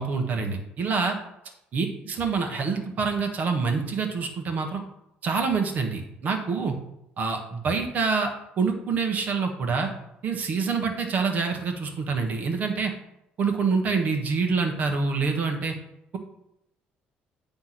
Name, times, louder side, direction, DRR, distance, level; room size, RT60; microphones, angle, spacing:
voice 1, 0.0-1.2 1.7-4.8 5.2-6.7 7.2-8.3 8.6-9.9 10.2-12.9 13.4-15.7, right 4 dB, 50° right, 4 dB, 1.4 m, -26 dB
9.5 x 3.4 x 5.9 m, 0.83 s
cardioid pair, 130°, 4 cm